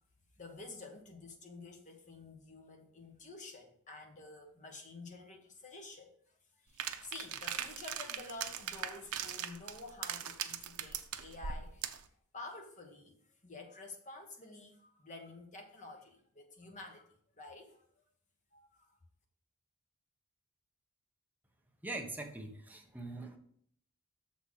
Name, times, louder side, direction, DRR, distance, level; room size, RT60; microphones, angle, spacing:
voice 1, 0.4-6.1 6.6-11.9 12.3-18.0 18.5-19.0, left 3 dB, 35° left, 2 dB, 1.4 m, -50 dB
sound 1, 6.8-12.1, right 9 dB, 85° right, 0.7 m, -40 dB
voice 2, 21.8-23.4, right 2 dB, 10° right, 3 dB, 0.9 m, -42 dB
6.8 x 4.3 x 6.4 m, 0.63 s
head